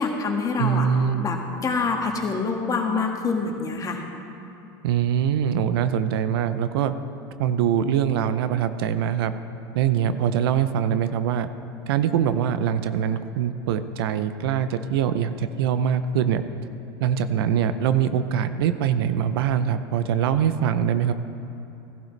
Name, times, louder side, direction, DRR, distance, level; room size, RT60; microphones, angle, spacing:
voice 1, 0.0-0.9 1.2-4.0, left 4 dB, 30° left, 2 dB, 1.7 m, -26 dB
voice 2, 0.6-1.3 4.8-6.9 7.4-9.3 9.7-11.5 11.9-16.4 17.0-21.1, right 8 dB, 75° right, 11 dB, 0.6 m, -23 dB
16.5 x 11.5 x 3.3 m, 3.0 s
hypercardioid pair, 100°, 12 cm